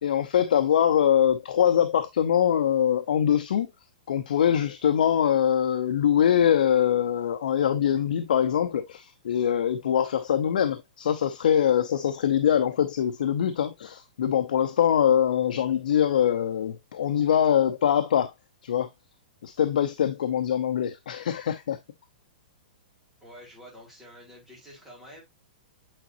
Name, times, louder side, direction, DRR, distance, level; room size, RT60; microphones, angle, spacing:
voice 1, 0.0-3.7 4.1-18.3 18.6-18.9 19.4-21.8, left 9 dB, 65° left, 0.7 m, -23 dB
voice 2, 23.2-25.2, equal, 5° right, 2.9 m, -48 dB
8.9 x 4.1 x 2.6 m
hypercardioid pair, 175°, 5 cm